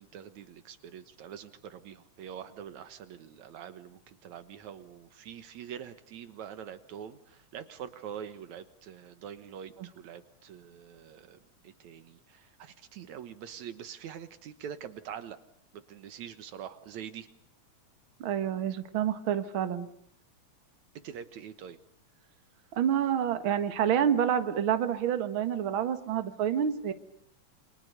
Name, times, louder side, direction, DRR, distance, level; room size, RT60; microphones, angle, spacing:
voice 1, 0.0-15.4 15.7-17.3 21.0-21.8, right 8 dB, 75° right, 11 dB, 2.5 m, -44 dB
voice 2, 18.2-19.9 22.8-26.9, right 9 dB, 50° right, 9 dB, 2.2 m, -28 dB
29.0 x 26.0 x 6.7 m, 0.65 s
omnidirectional pair, 3.4 m